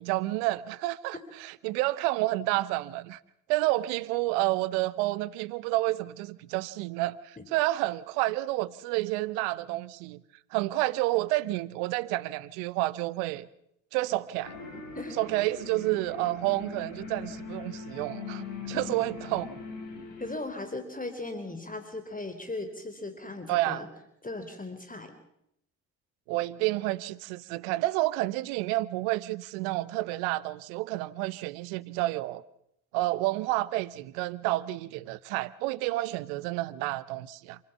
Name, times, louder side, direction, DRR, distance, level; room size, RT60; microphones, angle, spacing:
voice 1, 0.0-3.2 3.5-10.2 10.5-13.5 13.9-14.5 15.2-19.5 23.5-23.8 26.3-32.4 32.9-37.6, right 18 dB, 70° right, 0.9 m, -30 dB
sound 1, 14.4-20.4, left 4 dB, 75° left, 5.2 m, -41 dB
voice 2, 20.2-23.9 24.2-25.1, left 2 dB, 20° left, 3.8 m, -37 dB
28.0 x 16.0 x 7.2 m
figure-of-eight pair, 45°, 43 cm